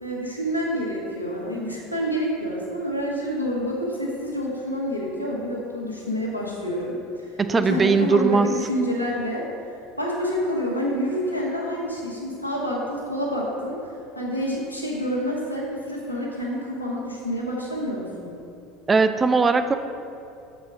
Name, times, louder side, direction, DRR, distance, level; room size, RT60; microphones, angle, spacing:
voice 1, 0.0-7.4 7.7-9.5 10.0-13.8 14.1-18.4, equal, 90° left, -4 dB, 1.1 m, -28 dB
voice 2, 7.4-8.5 18.9-19.8, right 4 dB, 20° right, 10 dB, 0.4 m, -19 dB
7.2 x 4.4 x 4.7 m, 2.5 s
figure-of-eight pair, 70°, 0 cm